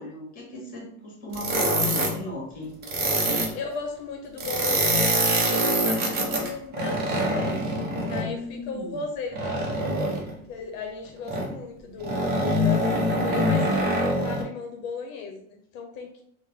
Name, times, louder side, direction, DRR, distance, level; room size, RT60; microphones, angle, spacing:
voice 1, 0.0-2.7 8.2-9.0, equal, 25° left, -2 dB, 1.3 m, -36 dB
sound 1, 1.3-2.2 2.8-3.5 4.4-8.3 9.3-10.3 11.3-11.5 12.0-14.4, right 1 dB, 30° right, 0.6 m, -24 dB
voice 2, 3.5-7.6 8.1-9.8 10.5-16.2, left 5 dB, 75° left, 3 dB, 0.7 m, -36 dB
3.5 x 2.1 x 3.5 m, 0.68 s
cardioid pair, 170°, 33 cm